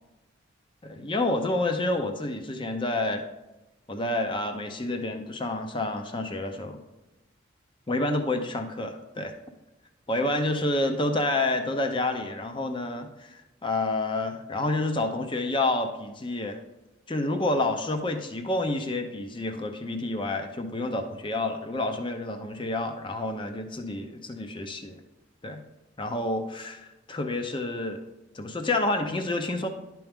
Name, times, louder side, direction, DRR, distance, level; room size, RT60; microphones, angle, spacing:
voice 1, 0.8-3.2 3.9-6.8 7.9-9.4 10.1-16.6 17.1-25.0 25.4-25.6 26.0-28.0 28.3-29.7, left 2 dB, 25° left, 6 dB, 0.6 m, -29 dB
11.0 x 4.6 x 3.6 m, 1.0 s
head